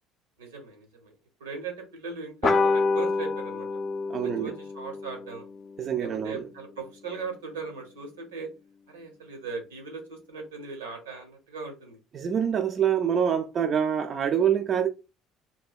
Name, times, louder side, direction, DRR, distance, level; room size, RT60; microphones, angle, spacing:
voice 1, 0.4-1.1 1.4-3.7 4.2-5.5 6.0-8.5 8.9-12.0, right 5 dB, 80° right, 0.9 m, -38 dB
sound 1, 2.4-7.3, left 4 dB, 35° left, 0.5 m, -29 dB
voice 2, 4.1-4.5 5.8-6.4 12.1-14.9, right 8 dB, 45° right, 0.3 m, -25 dB
3.1 x 2.7 x 2.3 m
figure-of-eight pair, 55°, 0 cm